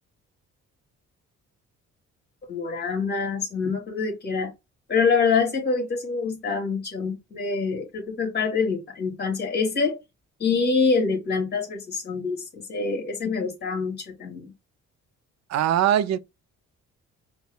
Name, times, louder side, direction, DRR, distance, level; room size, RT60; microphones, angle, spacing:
voice 1, 2.5-4.5 4.9-10.0 10.4-14.5, left 4 dB, 35° left, 1.9 m, -25 dB
voice 2, 15.5-16.2, right 10 dB, 60° right, 0.4 m, -21 dB
5.2 x 2.2 x 2.3 m
cardioid pair, 90°, 30 cm